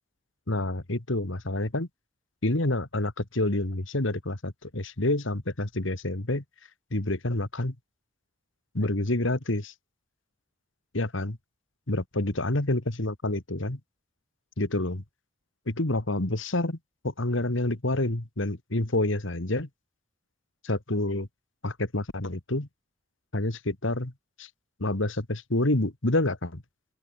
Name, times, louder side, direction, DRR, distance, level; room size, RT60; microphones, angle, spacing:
voice 1, 0.5-1.9 2.4-6.4 6.9-7.8 8.7-9.7 10.9-11.4 11.9-13.8 14.6-15.0 15.7-16.8 17.0-19.7 20.6-21.3 21.6-22.7 23.3-24.1 24.4-24.5 24.8-26.6, left 1 dB, 65° left, 2.1 m, -28 dB
open air
head